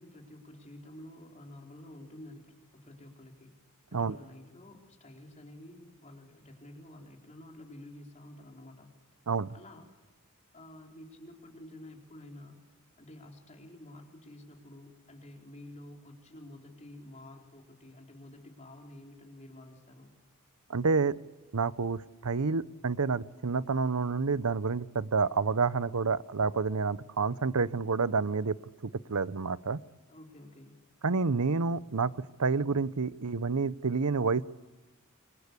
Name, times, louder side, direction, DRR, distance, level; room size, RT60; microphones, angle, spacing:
voice 1, 0.0-3.5 3.9-8.9 9.5-9.9 10.5-12.6 13.0-20.1 30.1-30.8, left 1 dB, 30° left, 2 dB, 4.3 m, -50 dB
voice 2, 20.7-21.2 21.5-28.6 29.1-29.8 31.0-32.1 32.4-34.4, right 4 dB, 85° right, 17 dB, 0.8 m, -29 dB
28.0 x 24.5 x 8.3 m, 1.2 s
head